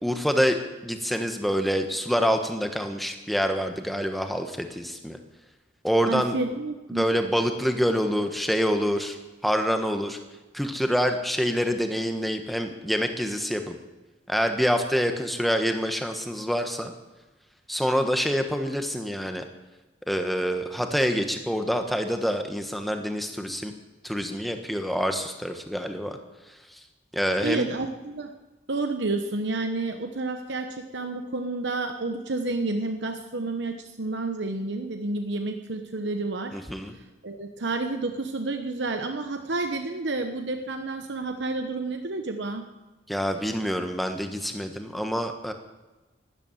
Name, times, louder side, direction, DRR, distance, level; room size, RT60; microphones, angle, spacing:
voice 1, 0.0-5.2 5.8-6.4 6.9-9.2 9.4-10.2 10.5-13.7 14.3-16.9 17.7-19.5 20.1-23.7 24.0-26.2 26.5-26.8 27.1-27.7 36.5-36.9 43.1-45.5, equal, ahead, 6 dB, 1.3 m, -26 dB
voice 2, 6.1-7.1 27.4-28.3 28.7-36.6 37.2-42.7, right 3 dB, 75° right, 6 dB, 1.0 m, -30 dB
13.0 x 12.0 x 9.2 m, 1.1 s
head